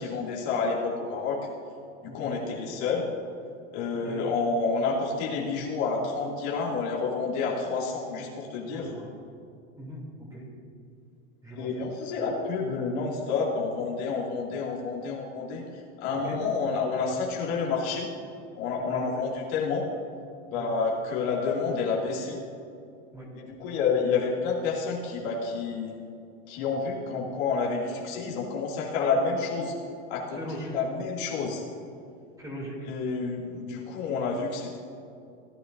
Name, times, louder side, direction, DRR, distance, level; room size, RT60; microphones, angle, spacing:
voice 1, 0.0-1.4 2.1-3.1 3.7-8.9 11.6-15.6 16.0-18.1 18.6-19.9 20.5-22.4 23.3-25.9 26.5-29.7 30.1-31.6 32.8-34.8, left 4 dB, 55° left, -4 dB, 2.6 m, -29 dB
voice 2, 2.1-2.4 4.0-4.2 8.7-9.1 9.8-10.4 11.4-11.7 16.3-16.4 18.9-19.2 20.5-20.7 23.1-23.3 30.4-30.7 32.4-32.8, equal, 10° right, -3 dB, 2.9 m, -39 dB
17.5 x 9.4 x 2.7 m, 2.5 s
hypercardioid pair, 115°, 39 cm